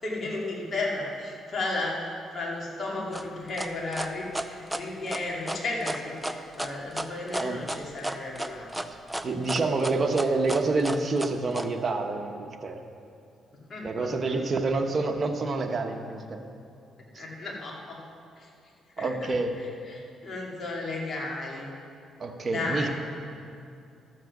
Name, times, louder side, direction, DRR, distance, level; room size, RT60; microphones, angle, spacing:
voice 1, 0.0-8.7 13.7-14.1 17.1-18.0 18.4-18.5 19.0-21.7 22.4-22.9, left 2 dB, 45° left, -3 dB, 2.8 m, -34 dB
sound 1, 3.1-11.7, right 1 dB, 10° right, 0.6 m, -33 dB
voice 2, 9.2-12.8 13.8-16.4 17.1-17.2 19.0-19.5 22.2-22.9, right 3 dB, 40° right, 4 dB, 1.1 m, -27 dB
13.0 x 7.8 x 6.1 m, 2.5 s
cardioid pair, 90°, 0 cm